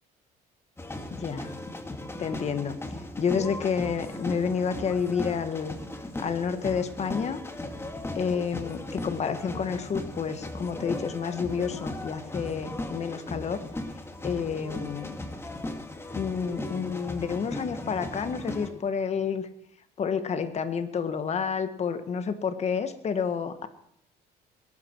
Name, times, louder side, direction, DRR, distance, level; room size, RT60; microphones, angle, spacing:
sound 1, 0.8-18.7, left 1 dB, 15° left, 2.2 m, -37 dB
voice 1, 1.1-1.6 2.2-5.8 6.2-7.4 8.1-13.6 14.2-15.2 16.1-19.5 20.0-23.7, left 6 dB, 40° left, 9 dB, 1.6 m, -30 dB
21.0 x 12.0 x 4.6 m, 0.70 s
cardioid pair, 110°, 17 cm